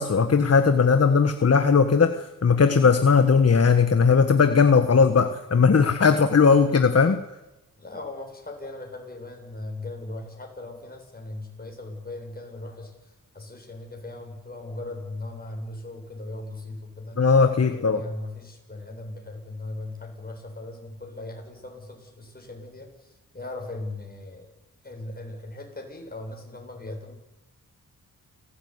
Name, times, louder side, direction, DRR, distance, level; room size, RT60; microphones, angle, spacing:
voice 1, 0.0-7.2 17.2-18.0, left 5 dB, 45° left, 8 dB, 1.5 m, -18 dB
voice 2, 7.8-17.2 17.6-24.6 24.8-27.2, left 2 dB, 25° left, 2 dB, 7.6 m, -38 dB
29.5 x 17.5 x 9.8 m, 1.0 s
wide cardioid pair, 100°, 35 cm